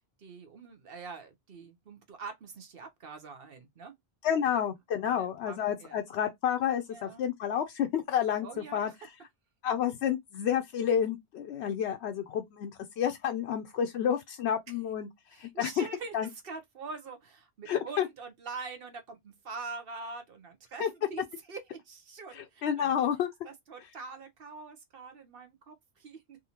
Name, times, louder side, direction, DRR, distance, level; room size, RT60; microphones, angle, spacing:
voice 1, 0.2-3.9 5.1-6.0 6.9-7.2 8.4-9.0 15.3-21.2 21.5-23.0 23.4-26.4, right 4 dB, 60° right, 1.0 m, -44 dB
voice 2, 4.2-8.9 9.6-15.9 16.1-16.3 17.7-18.1 20.8-20.9 22.3-23.3, left 9 dB, 75° left, 0.8 m, -30 dB
3.6 x 2.7 x 2.8 m
omnidirectional pair, 1.1 m